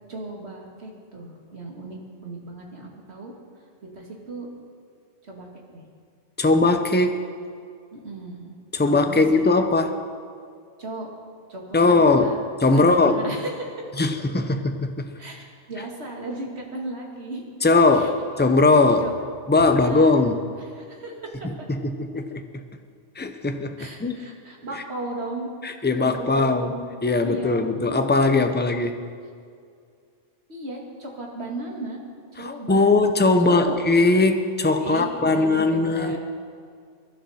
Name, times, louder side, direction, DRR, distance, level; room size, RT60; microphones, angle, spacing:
voice 1, 0.1-3.3 3.9-4.5 5.2-5.8 7.9-8.5 8.8-9.6 10.8-11.1 11.5-12.4 12.7-13.9 15.2-17.4 17.9-18.1 19.0-19.2 19.6-20.2 20.6-21.5 23.8-25.5 25.8-26.9 27.2-27.6 30.5-32.0 32.3-32.9 33.4-33.8 34.8-36.2, right 2 dB, 60° right, 0 dB, 2.4 m, -36 dB
voice 2, 6.4-7.2 8.7-10.0 11.7-12.4 12.6-13.3 14.0-15.1 17.6-19.1 19.5-20.4 21.7-22.4 23.2-23.8 24.0-24.2 25.6-26.7 27.0-29.0 32.4-36.2, left 3 dB, 10° left, 7 dB, 0.6 m, -20 dB
22.5 x 11.5 x 4.3 m, 2.2 s
omnidirectional pair, 1.2 m